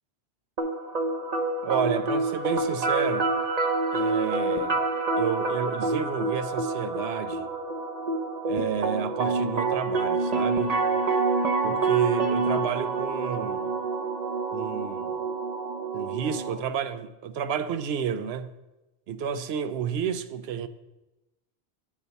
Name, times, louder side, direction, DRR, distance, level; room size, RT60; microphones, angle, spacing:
sound 1, 0.6-16.6, right 3 dB, 40° right, 0.7 m, -27 dB
voice 1, 1.6-3.3 3.9-4.8 5.2-7.5 8.4-10.7 11.6-13.7 14.5-15.2 15.9-18.5 19.1-20.7, right 8 dB, 70° right, 0.8 m, -30 dB
10.5 x 4.0 x 6.8 m
omnidirectional pair, 1.1 m